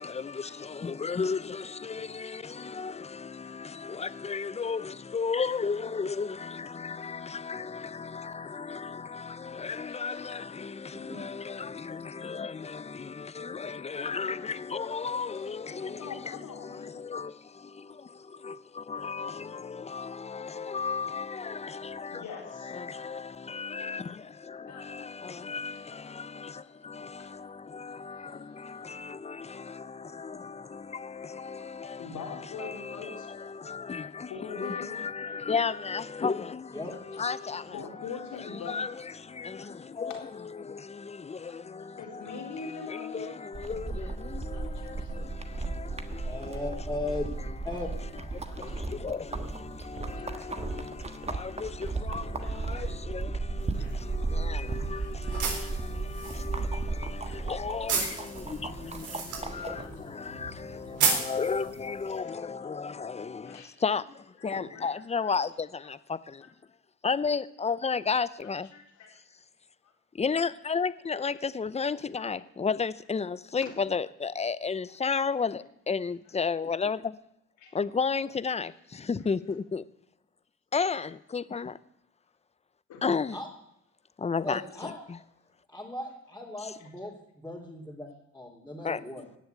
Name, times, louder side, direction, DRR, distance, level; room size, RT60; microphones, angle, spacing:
voice 1, 0.0-16.1 16.6-22.2 22.6-32.1 32.6-33.3 33.5-34.3 34.6-37.7 38.7-40.1 40.6-42.2 42.6-46.8 48.3-66.4 67.0-68.7 70.2-77.2 77.7-79.8 80.7-81.8 83.0-83.4 84.2-85.2 88.8-89.0, left 5 dB, 20° left, 0.6 m, -34 dB
voice 2, 3.4-4.1 4.7-4.8 6.4-7.2 8.4-8.5 9.7-10.5 11.5-11.6 12.1-12.4 14.4-16.9 20.2-20.7 22.1-22.8 24.7-25.0 25.4-26.6 27.2-27.4 27.9-29.0 31.1-33.8 34.3-35.4 36.2-36.3 37.4-38.9 39.6-40.3 41.4-43.4 43.7-44.1 44.5-45.3 46.5-46.6 48.5-49.2 50.1-50.8 51.8-52.9 53.8-54.0 54.5-56.0 57.2-57.5 57.9-58.1 58.8-59.9 60.5-61.2 62.1-63.1 63.4-63.7 64.4-65.5 65.8-65.9 68.6-69.1 69.8-69.9 71.3-71.4 72.2-72.3 73.6-73.7 75.1-75.2 76.4-76.5 77.6-77.8 78.6-78.7 79.2-79.3 82.9-83.0 86.8-86.9, left 5 dB, 80° left, 4.2 m, -47 dB
sound 1, 43.5-59.9, right 3 dB, 20° right, 1.4 m, -35 dB
voice 3, 46.2-47.3 47.6-47.9 83.3-83.5 84.4-85.0 85.7-88.1 88.3-89.3, left 2 dB, 5° left, 3.0 m, -37 dB
sound 2, 53.6-62.2, right 5 dB, 80° right, 4.0 m, -35 dB
17.5 x 7.2 x 9.1 m
cardioid pair, 90°, 30 cm